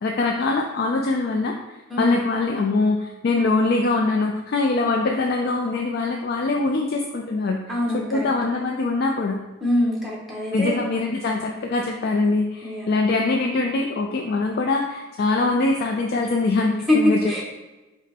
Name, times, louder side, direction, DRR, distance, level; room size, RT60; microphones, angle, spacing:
voice 1, 0.0-1.6 2.0-7.6 7.9-9.4 10.5-17.4, left 3 dB, 55° left, 1 dB, 0.3 m, -23 dB
voice 2, 1.9-2.3 7.7-8.3 9.6-10.8 12.6-13.2 16.9-17.4, left 1 dB, ahead, -4 dB, 1.0 m, -24 dB
5.0 x 2.1 x 4.2 m, 1.1 s
head